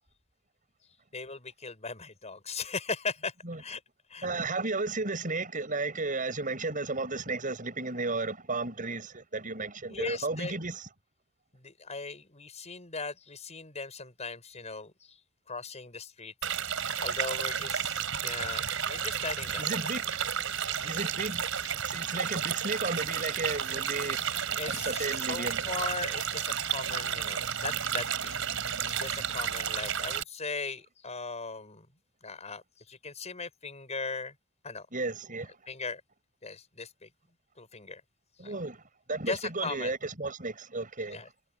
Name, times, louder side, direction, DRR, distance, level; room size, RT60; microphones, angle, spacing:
voice 1, 1.1-3.8 4.1-4.3 9.9-10.6 11.5-15.2 15.5-16.3 17.0-19.6 20.8-20.9 24.6-28.4 28.8-31.9 32.2-34.3 34.6-34.9 35.7-36.0 36.4-37.1 37.6-38.0 38.4-38.5 39.3-39.9 41.1-41.3, left 4 dB, 35° left, 5.8 m, -38 dB
voice 2, 4.2-10.9 19.6-20.1 20.8-21.5 21.8-24.3 24.5-25.7 34.9-35.6 38.4-38.8 39.1-41.3, right 3 dB, 40° right, 7.9 m, -34 dB
sound 1, 16.4-30.2, right 8 dB, 75° right, 5.6 m, -32 dB
head